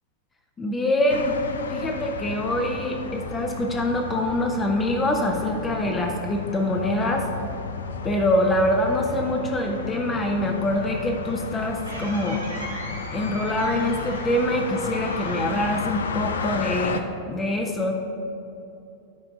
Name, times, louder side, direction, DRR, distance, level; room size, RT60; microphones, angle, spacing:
voice 1, 0.6-1.4 1.7-7.3 8.0-12.4 13.1-17.9, left 1 dB, 20° left, 2 dB, 0.6 m, -25 dB
sound 1, 1.1-17.0, left 4 dB, 65° left, 0.4 m, -33 dB
sound 2, 10.9-16.7, right 1 dB, 85° right, 1.6 m, -41 dB
10.5 x 3.6 x 4.8 m, 2.8 s
figure-of-eight pair, 90°, 0 cm